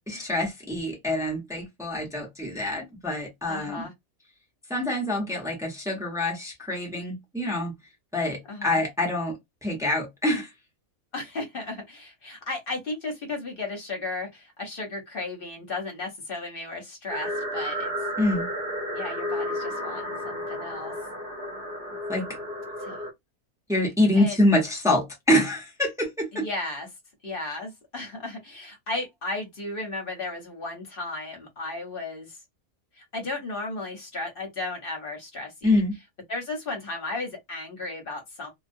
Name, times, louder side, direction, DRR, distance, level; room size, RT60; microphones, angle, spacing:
voice 1, 0.1-3.8 4.7-7.7 8.1-10.5 18.2-18.5 22.1-22.3 23.7-26.5 35.6-35.9, left 1 dB, 5° right, 0.4 m, -25 dB
voice 2, 3.5-3.9 8.5-8.8 11.1-17.9 18.9-20.9 22.8-23.0 24.1-24.4 26.3-26.9 27.2-32.4 33.0-35.8 36.3-38.5, left 2 dB, 50° left, 0.8 m, -35 dB
sound 1, 17.1-23.1, equal, 45° right, 0.7 m, -32 dB
2.2 x 2.1 x 2.5 m
omnidirectional pair, 1.4 m